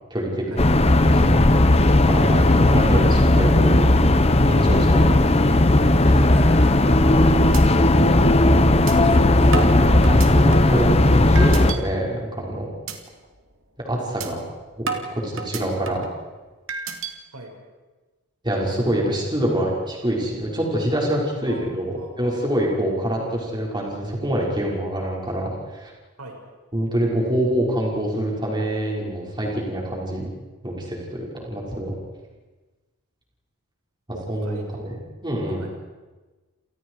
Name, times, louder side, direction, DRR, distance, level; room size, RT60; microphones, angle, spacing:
voice 1, 0.1-0.7 1.1-1.2 2.0-3.9 4.4-5.8 6.1-6.3 9.1-12.7 13.8-14.4 14.8-16.1 18.4-25.9 26.7-30.3 30.6-31.9 34.3-34.9 35.2-35.6, right 1 dB, 20° right, -2 dB, 5.7 m, -26 dB
sound 1, 0.6-11.7, left 1 dB, 25° left, 1.1 m, -16 dB
voice 2, 6.3-7.2 9.0-9.2 17.3-17.5 21.5-22.1 26.2-26.3 34.1-35.0 35.5-35.7, right 1 dB, 85° right, 1 dB, 6.3 m, -40 dB
sound 2, 7.5-7.6 8.0-8.1 8.9-9.0 9.5-10.8 11.3-11.8 12.2-12.4 12.9-13.0 13.4-13.6 14.2-14.3 14.9-16.1 16.7-17.1, right 5 dB, 60° right, 2.6 m, -31 dB
29.0 x 29.0 x 4.9 m, 1.2 s
head